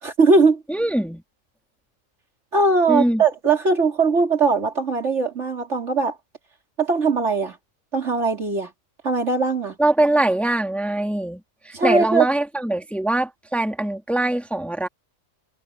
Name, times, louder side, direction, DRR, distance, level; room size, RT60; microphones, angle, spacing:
voice 1, 0.0-0.6 2.5-6.2 6.8-7.6 7.9-8.7 9.0-9.7 11.7-12.3, right 4 dB, 60° right, 3.1 m, -20 dB
voice 2, 0.7-1.2 2.9-3.2 9.8-14.9, right 1 dB, ahead, 2.0 m, -22 dB
omnidirectional pair, 1.4 m